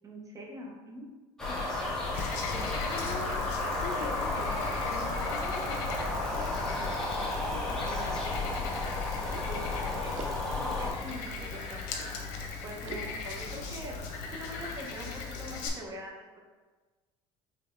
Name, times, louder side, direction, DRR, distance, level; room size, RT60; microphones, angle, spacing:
voice 1, 0.0-1.1 1.5-1.7 9.5-10.3 10.6-11.9 12.6-14.0 14.3-15.1 15.4-16.4, equal, 25° right, -1 dB, 0.8 m, -43 dB
sound 1, 1.4-10.9, left 2 dB, 5° left, 1.1 m, -33 dB
Frog, 2.1-15.7, left 4 dB, 80° left, 0.8 m, -39 dB
voice 2, 2.2-8.9, left 4 dB, 50° left, 4 dB, 0.5 m, -43 dB
sound 2, 4.2-5.1 5.7-6.3 6.7-6.8 7.5-8.6 9.2-12.4 12.8-14.1 14.4-15.6, right 4 dB, 55° right, 0.5 m, -49 dB
5.0 x 3.2 x 2.6 m, 1.3 s
cardioid pair, 125°, 14 cm